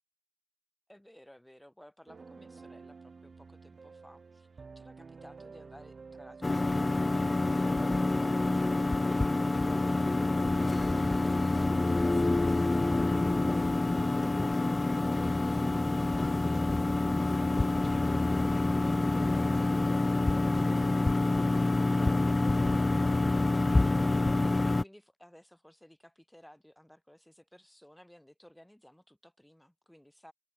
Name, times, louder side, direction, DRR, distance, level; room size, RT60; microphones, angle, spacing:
voice 1, 0.9-8.7 22.0-30.3, equal, 10° left, 4.1 m, -57 dB
sound 1, 2.1-8.1, right 4 dB, 75° right, 0.8 m, -51 dB
sound 2, 6.4-24.8, left 2 dB, 35° left, 0.3 m, -27 dB
sound 3, 9.7-17.9, right 2 dB, 40° right, 6.1 m, -51 dB
wide cardioid pair, 70°, 0 cm